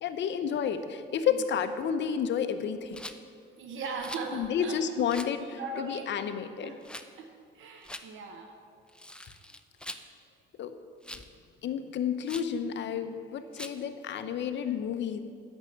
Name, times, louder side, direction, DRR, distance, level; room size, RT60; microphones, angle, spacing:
voice 1, 0.0-3.0 4.3-6.8 10.6-10.7 11.1-11.2 11.6-15.2, left 7 dB, 65° left, 9 dB, 0.8 m, -31 dB
Rattle, 2.9-3.2 4.0-4.3 5.1-5.4 6.8-7.1 7.8-8.1 8.9-10.1 11.0-11.3 12.2-12.5 13.5-13.8, left 1 dB, 5° left, 0.5 m, -43 dB
voice 2, 3.6-4.8 5.6-6.3 6.6-6.8 7.2-7.3 7.5-8.5, right 4 dB, 80° right, 4 dB, 0.9 m, -38 dB
8.9 x 6.3 x 7.8 m, 2.2 s
cardioid pair, 90°, 20 cm